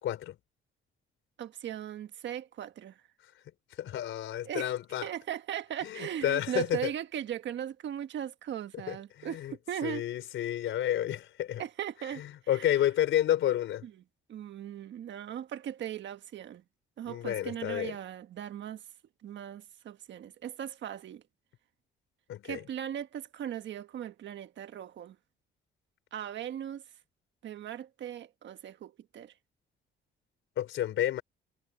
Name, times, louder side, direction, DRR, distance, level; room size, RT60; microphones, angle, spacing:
voice 1, 0.0-0.4 3.8-5.1 5.8-6.9 8.9-9.5 9.8-11.6 12.2-13.9 17.1-18.0 22.3-22.6 30.6-31.2, left 12 dB, 80° left, 3.9 m, -30 dB
voice 2, 1.4-3.0 4.4-4.7 5.0-10.0 11.6-12.7 13.8-13.9 14.3-16.6 17.0-18.8 19.2-21.2 22.4-25.2 26.1-26.8 27.4-29.3, right 10 dB, 65° right, 1.4 m, -38 dB
cardioid pair, 90°, 20 cm